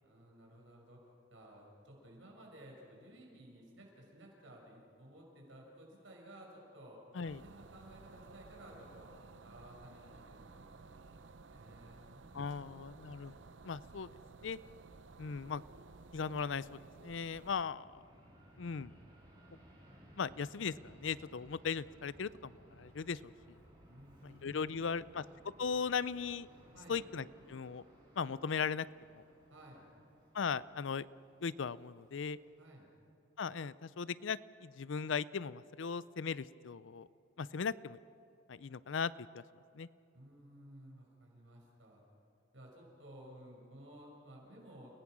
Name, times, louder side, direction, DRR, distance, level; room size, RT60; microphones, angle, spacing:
voice 1, 0.0-1.0 1.3-7.0 7.3-9.1 9.4-12.8 23.9-25.1 26.7-27.0 29.5-29.9 32.6-32.9 40.1-42.0 42.5-45.0, right 1 dB, 90° right, -1 dB, 5.9 m, -56 dB
sound 1, 7.2-17.6, right 3 dB, 70° right, 0.8 m, -56 dB
voice 2, 12.3-13.3 13.6-14.1 14.4-14.6 15.2-15.6 16.1-17.9 18.6-18.9 20.2-23.3 24.2-25.2 25.6-26.5 26.9-27.8 28.2-28.9 29.1-29.2 30.3-31.1 31.4-32.4 33.4-37.1 37.4-38.0 38.5-39.4 39.7-39.9, left 6 dB, 75° left, 18 dB, 0.5 m, -38 dB
Fixed-wing aircraft airplane, 15.0-32.6, equal, 25° right, 7.7 m, -62 dB
30.0 x 18.0 x 6.2 m, 2.8 s
head